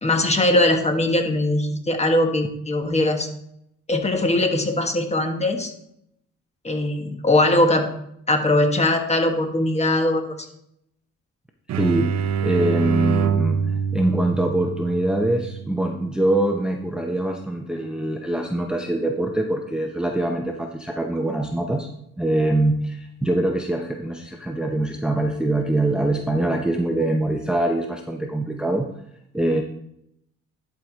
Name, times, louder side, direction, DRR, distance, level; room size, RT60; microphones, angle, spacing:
voice 1, 0.0-3.3 3.9-5.7 6.6-7.9 8.3-10.5, left 1 dB, 20° left, 5 dB, 1.3 m, -20 dB
sound 1, 11.7-17.2, right 7 dB, 60° right, 0.7 m, -26 dB
voice 2, 11.8-21.9 22.2-28.9 29.3-29.6, right 1 dB, 5° right, 2 dB, 0.7 m, -23 dB
11.0 x 4.9 x 4.0 m, 0.76 s
cardioid pair, 90°, 30 cm